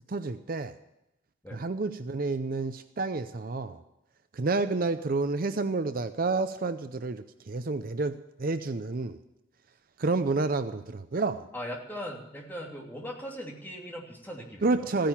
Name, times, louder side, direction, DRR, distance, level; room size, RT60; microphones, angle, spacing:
voice 1, 0.1-0.7 1.5-3.8 4.3-9.2 10.0-11.5 14.6-15.1, right 3 dB, 45° right, 11 dB, 0.6 m, -29 dB
voice 2, 11.5-14.9, equal, 10° left, -1 dB, 2.8 m, -39 dB
15.0 x 10.5 x 7.2 m, 0.90 s
head